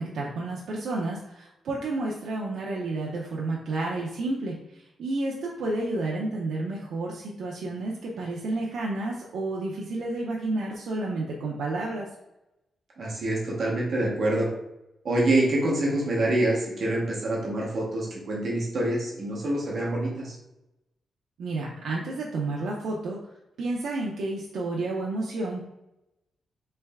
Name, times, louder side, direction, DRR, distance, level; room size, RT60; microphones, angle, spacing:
voice 1, 0.0-12.1 21.4-23.2 23.6-25.6, right 2 dB, 70° right, -3 dB, 0.5 m, -31 dB
voice 2, 13.0-14.5 15.0-20.4, right 1 dB, 45° right, -4 dB, 1.0 m, -26 dB
3.3 x 3.1 x 3.4 m, 0.92 s
wide cardioid pair, 170°, 0 cm